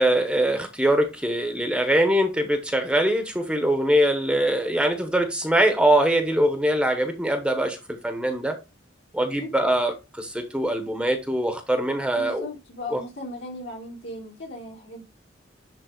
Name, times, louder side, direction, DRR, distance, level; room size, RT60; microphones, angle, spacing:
voice 1, 0.0-7.8 8.0-8.6 9.1-12.4 12.9-13.0, right 1 dB, 5° right, 1.1 m, -22 dB
voice 2, 12.1-15.0, left 2 dB, 70° left, 3.8 m, -37 dB
10.5 x 3.8 x 3.9 m
head